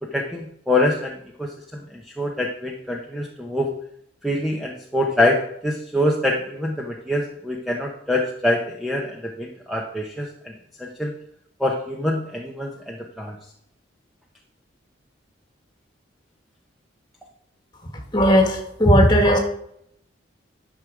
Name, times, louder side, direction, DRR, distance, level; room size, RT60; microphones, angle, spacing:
voice 1, 0.0-3.7 4.2-10.5 10.8-11.1 11.6-13.4, left 1 dB, ahead, 0 dB, 0.8 m, -25 dB
voice 2, 18.1-19.4, equal, 25° left, 2 dB, 1.9 m, -16 dB
11.0 x 6.1 x 4.9 m, 0.72 s
head